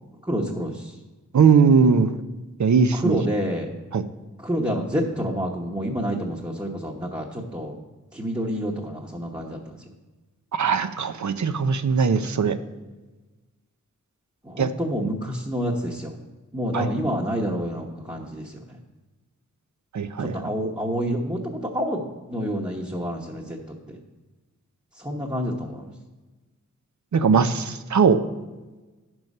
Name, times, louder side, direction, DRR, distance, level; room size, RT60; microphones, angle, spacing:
voice 1, 0.3-0.9 2.9-3.7 4.4-7.8 8.1-9.8 14.4-16.1 16.5-18.8 20.2-23.6 23.9-24.0 25.0-25.9, equal, 15° right, -2 dB, 1.1 m, -28 dB
voice 2, 1.3-2.1 2.6-3.2 3.9-4.0 10.5-12.6 14.6-14.7 16.7-16.9 19.9-20.4 27.1-28.2, right 5 dB, 65° right, 10 dB, 0.6 m, -19 dB
9.1 x 6.3 x 5.4 m, 1.2 s
wide cardioid pair, 60°, 31 cm